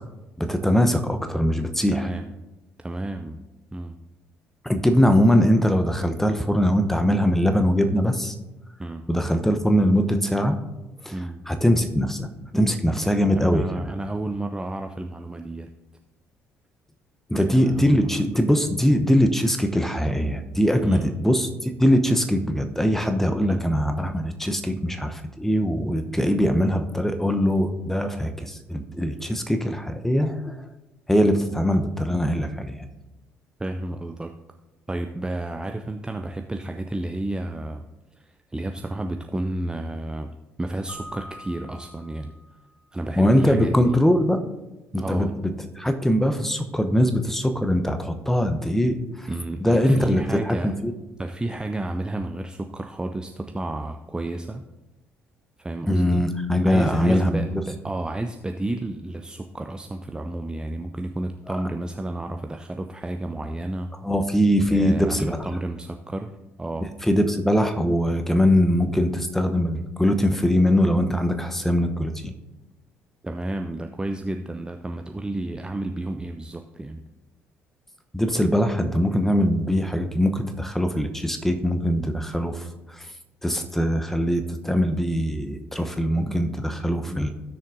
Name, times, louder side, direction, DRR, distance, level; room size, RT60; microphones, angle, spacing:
voice 1, 0.4-2.1 4.6-8.3 9.1-10.6 11.0-11.1 11.5-13.9 17.3-30.6 31.1-32.9 43.2-44.4 44.9-45.5 45.8-49.3 49.6-50.9 55.9-57.5 61.5-61.6 64.0-65.4 67.0-72.3 78.1-83.1 83.4-87.3, equal, 5° left, 7 dB, 0.9 m, -22 dB
voice 2, 1.9-2.3 2.8-3.4 3.7-4.0 8.8-9.0 11.1-11.4 13.3-15.7 17.4-18.1 20.8-21.1 23.4-23.7 33.6-34.3 34.9-37.9 38.2-42.3 42.9-44.0 45.0-45.3 49.3-50.8 51.2-54.6 55.6-56.3 56.6-63.9 64.7-66.9 73.2-77.0 87.0-87.3, right 1 dB, 10° right, 6 dB, 0.5 m, -31 dB
Keyboard (musical), 40.9-42.7, left 1 dB, 50° left, 2.0 m, -43 dB
16.5 x 6.4 x 2.7 m, 1.0 s
figure-of-eight pair, 50°, 7 cm